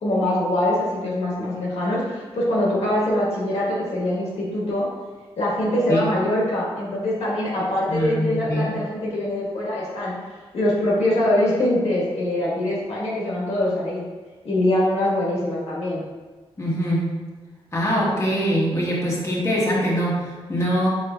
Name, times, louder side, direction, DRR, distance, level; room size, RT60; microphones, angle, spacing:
voice 1, 0.0-4.9 5.4-10.1 10.5-14.0 14.4-16.0 18.2-18.3, left 1 dB, 85° left, -6 dB, 1.4 m, -23 dB
voice 2, 7.9-8.7 16.6-17.1 17.7-20.9, equal, 25° left, -6 dB, 1.2 m, -23 dB
4.8 x 4.2 x 2.4 m, 1.3 s
wide cardioid pair, 100°, 10 cm